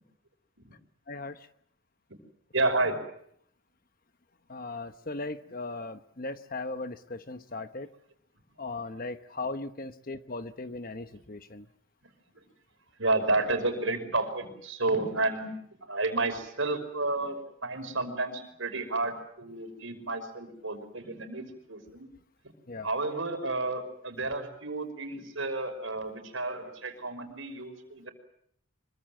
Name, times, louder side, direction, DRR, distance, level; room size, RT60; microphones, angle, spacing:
voice 1, 1.1-1.5 4.5-7.9 8.6-11.7 22.7-22.9, left 3 dB, 40° left, 10 dB, 1.0 m, -38 dB
voice 2, 2.5-3.0 13.0-15.5 15.8-22.1 22.8-28.1, right 2 dB, 65° right, 6 dB, 5.5 m, -31 dB
25.5 x 23.5 x 7.7 m, 0.69 s
head